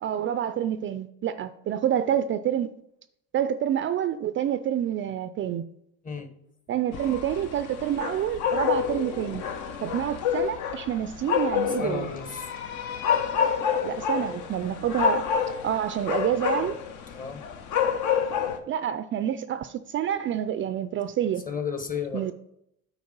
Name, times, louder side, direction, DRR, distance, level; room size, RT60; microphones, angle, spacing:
voice 1, 0.0-2.7 3.3-5.6 6.7-9.4 9.8-12.1 13.8-15.2 15.6-16.8 18.7-21.5 22.1-22.3, right 10 dB, 40° right, 0.4 m, -28 dB
sound 1, 6.9-18.6, left 7 dB, 60° left, 1.0 m, -28 dB
voice 2, 11.7-12.5 17.1-17.4 21.5-22.3, left 6 dB, 25° left, 1.1 m, -33 dB
7.8 x 4.7 x 5.3 m
supercardioid pair, 110°, 33 cm